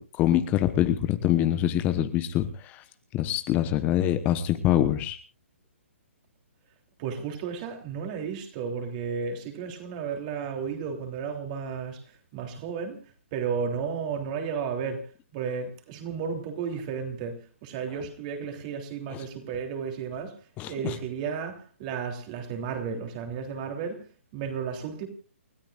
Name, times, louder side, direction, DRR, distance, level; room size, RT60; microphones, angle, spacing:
voice 1, 0.0-2.8 3.1-5.2 19.1-19.2 20.6-21.0, left 12 dB, 25° left, 1.1 m, -25 dB
voice 2, 7.0-12.0 12.3-13.0 13.3-15.0 15.3-20.3 20.7-24.0 24.3-25.1, right 6 dB, 35° right, 3.3 m, -33 dB
29.0 x 13.5 x 2.5 m
hypercardioid pair, 140°, 7 cm